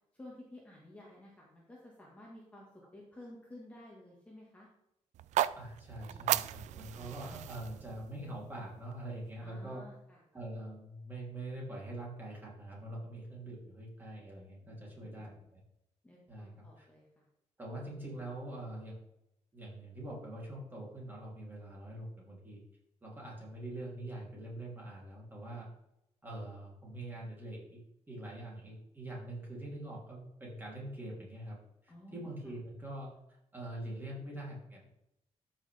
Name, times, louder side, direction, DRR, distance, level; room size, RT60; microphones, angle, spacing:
voice 1, 0.1-4.7 6.1-7.2 9.4-10.2 14.6-15.4 16.0-17.3 31.9-32.3, left 1 dB, 10° left, -4 dB, 1.5 m, -54 dB
sound 1, 5.1-9.3, right 12 dB, 80° right, 0.4 m, -36 dB
voice 2, 5.5-9.8 10.3-15.6 16.3-16.9 17.6-19.0 19.5-22.6 23.0-25.7 26.2-27.8 28.1-31.6 31.8-34.9, right 1 dB, 15° right, -4 dB, 3.1 m, -44 dB
13.0 x 5.9 x 3.4 m, 0.83 s
wide cardioid pair, 175°, 12 cm